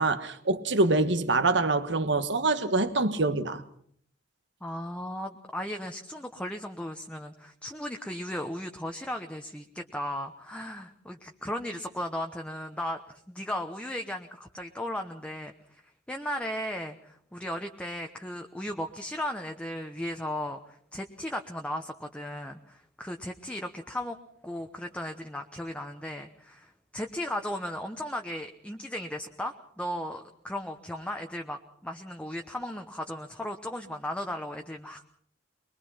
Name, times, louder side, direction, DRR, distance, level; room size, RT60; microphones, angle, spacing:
voice 1, 0.0-3.6, right 3 dB, 70° right, 1.5 m, -25 dB
voice 2, 4.6-15.5 16.1-24.2 24.4-35.0, left 1 dB, 5° left, 1.0 m, -36 dB
22.0 x 22.0 x 5.7 m
head